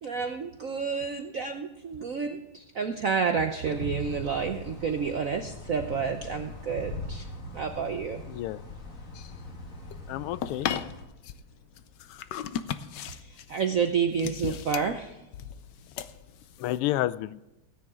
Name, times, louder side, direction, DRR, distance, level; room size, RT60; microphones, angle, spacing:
voice 1, 0.0-7.2 7.5-8.2 13.5-15.1, right 6 dB, 75° right, 6 dB, 0.7 m, -29 dB
sound 1, 3.6-11.0, left 2 dB, 40° left, 1.8 m, -41 dB
voice 2, 8.3-8.6 10.1-10.7 14.4-14.6 16.6-17.4, left 14 dB, 85° left, 16 dB, 1.5 m, -30 dB
sound 2, 9.1-16.8, left 9 dB, 70° left, 1.1 m, -37 dB
18.0 x 9.7 x 3.6 m, 1.0 s
omnidirectional pair, 2.4 m